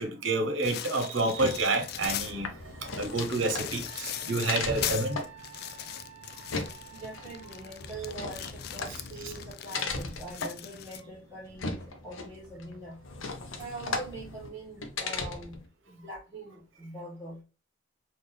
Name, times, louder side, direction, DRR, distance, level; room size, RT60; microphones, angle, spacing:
voice 1, 0.0-2.5 2.8-5.2 9.2-9.3, right 2 dB, 70° right, 0.9 m, -29 dB
sound 1, 0.6-2.4 2.9-11.0, left 11 dB, 50° left, 0.3 m, -39 dB
sound 2, 1.4-15.7, left 3 dB, 75° left, 0.7 m, -38 dB
Wind instrument woodwind instrument, 3.8-7.9, right 4 dB, 35° left, 1.0 m, -50 dB
voice 2, 6.9-13.0 13.5-17.4, right 2 dB, 15° right, 1.5 m, -43 dB
3.8 x 2.6 x 3.2 m
head